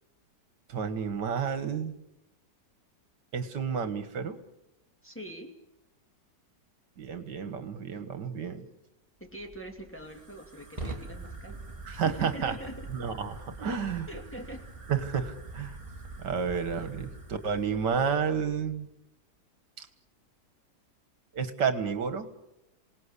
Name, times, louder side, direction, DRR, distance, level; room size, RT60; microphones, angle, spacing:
voice 1, 0.7-2.0 3.3-4.4 7.0-8.7 11.9-12.6 12.9-14.1 14.9-15.8 16.2-18.9 19.8-19.9 21.3-22.3, right 6 dB, 70° right, 11 dB, 2.2 m, -31 dB
voice 2, 5.0-5.5 9.2-11.6 11.9-12.9 14.1-14.7, right 1 dB, 5° left, 2 dB, 2.4 m, -43 dB
Fire, 9.2-18.2, right 3 dB, 15° right, 2.5 m, -44 dB
27.0 x 18.5 x 8.3 m, 0.88 s
omnidirectional pair, 1.9 m